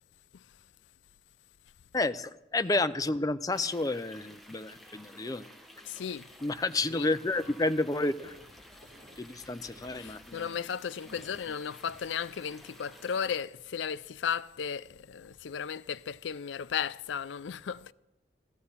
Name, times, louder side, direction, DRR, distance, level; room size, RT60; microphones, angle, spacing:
voice 1, 1.9-5.5 6.4-8.3 9.2-10.4, left 2 dB, 20° left, 0.5 m, -30 dB
sound 1, 3.5-13.3, equal, ahead, 1.4 m, -54 dB
voice 2, 5.8-6.3 6.9-7.1 10.0-17.9, left 7 dB, 85° left, 0.4 m, -35 dB
sound 2, 6.4-14.3, equal, 45° right, 4.7 m, -60 dB
15.0 x 14.5 x 5.6 m
head